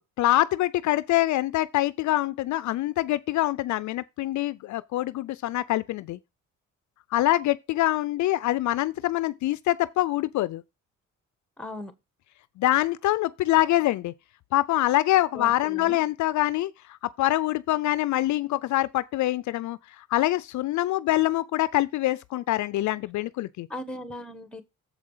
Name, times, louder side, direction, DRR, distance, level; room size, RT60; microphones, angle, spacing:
voice 1, 0.2-6.2 7.1-10.6 12.6-14.1 14.5-23.7, left 15 dB, 70° left, 0.4 m, -25 dB
voice 2, 11.6-11.9 15.3-16.0 23.7-24.6, left 1 dB, 5° left, 1.3 m, -38 dB
7.3 x 4.9 x 5.5 m
cardioid pair, 90°, 30 cm